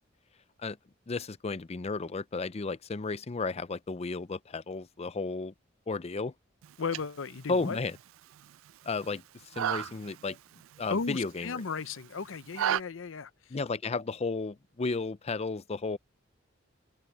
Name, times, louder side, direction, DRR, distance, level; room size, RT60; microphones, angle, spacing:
voice 1, 1.1-5.5 5.9-6.3 7.5-7.9 8.9-9.2 9.6-10.4 10.8-11.5 13.5-16.0, left 3 dB, 30° left, 0.5 m, -33 dB
sound 1, 6.6-12.8, right 10 dB, 85° right, 0.3 m, -37 dB
voice 2, 6.8-7.8 10.9-13.3, left 5 dB, 75° left, 0.7 m, -35 dB
open air
head